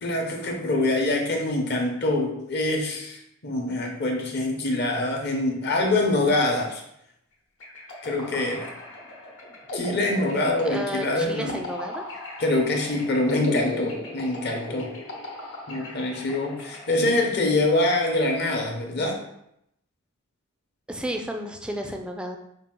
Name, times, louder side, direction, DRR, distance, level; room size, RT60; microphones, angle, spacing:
voice 1, 0.0-6.8 8.0-8.7 9.7-11.6 12.4-14.9 15.7-19.2, left 2 dB, 50° left, 1 dB, 0.8 m, -25 dB
sound 1, 7.6-18.0, left 1 dB, 70° left, 1.0 m, -37 dB
voice 2, 10.6-12.0 20.9-22.4, right 1 dB, 5° right, 3 dB, 0.3 m, -32 dB
5.1 x 2.5 x 3.7 m, 0.78 s
head